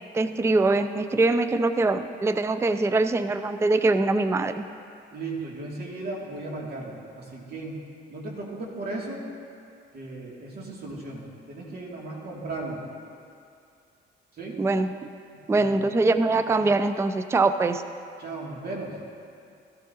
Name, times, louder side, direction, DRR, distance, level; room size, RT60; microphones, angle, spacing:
voice 1, 0.1-4.6 14.6-15.0 15.5-17.8, right 3 dB, 15° right, 11 dB, 0.4 m, -23 dB
voice 2, 5.1-7.8 8.1-9.3 9.9-12.8 14.4-14.6 15.5-15.8 18.2-19.0, right 2 dB, 50° right, -3 dB, 2.5 m, -36 dB
15.0 x 13.5 x 2.8 m, 2.4 s
cardioid pair, 90°, 20 cm